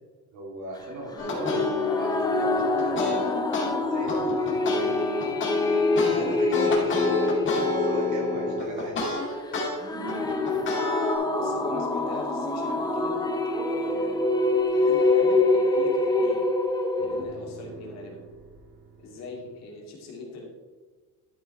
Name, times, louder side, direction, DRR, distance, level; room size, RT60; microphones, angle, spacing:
voice 1, 0.3-3.2 3.7-5.0 5.4-9.0, right 1 dB, 60° right, -2 dB, 3.2 m, -38 dB
sound 1, 1.2-3.7 4.1-9.7 10.1-11.1, left 2 dB, 35° left, 2.3 m, -30 dB
sound 2, 1.2-17.2, left 2 dB, 10° left, 0.7 m, -25 dB
sound 3, 2.3-8.1 8.6-8.8 9.5-9.6 9.9-16.0 17.0-19.6, right 2 dB, 85° right, 2.9 m, -49 dB
voice 2, 11.2-16.5 17.0-18.2 19.0-20.4, left 2 dB, 50° left, -1 dB, 2.5 m, -41 dB
12.0 x 5.4 x 4.4 m, 1.4 s
cardioid pair, 165°, 33 cm